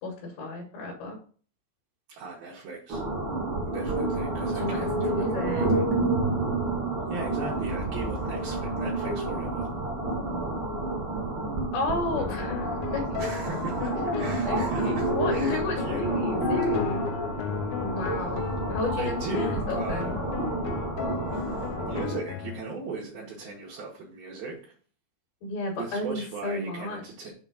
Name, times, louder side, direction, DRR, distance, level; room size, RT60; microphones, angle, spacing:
voice 1, 0.0-1.2 4.5-5.7 11.7-13.2 14.5-17.2 17.8-20.2 25.4-27.3, left 2 dB, 60° left, 0 dB, 3.2 m, -33 dB
voice 2, 2.1-3.0 3.7-5.8 7.1-9.7 13.2-16.1 18.2-18.6 19.0-20.1 21.3-24.7 25.7-27.3, right 4 dB, 65° right, -4 dB, 2.8 m, -38 dB
sound 1, 2.9-22.1, right 2 dB, 90° right, 1.0 m, -29 dB
sound 2, 12.2-22.6, left 11 dB, 85° left, 2.9 m, -35 dB
7.1 x 3.9 x 6.3 m, 0.43 s
omnidirectional pair, 5.2 m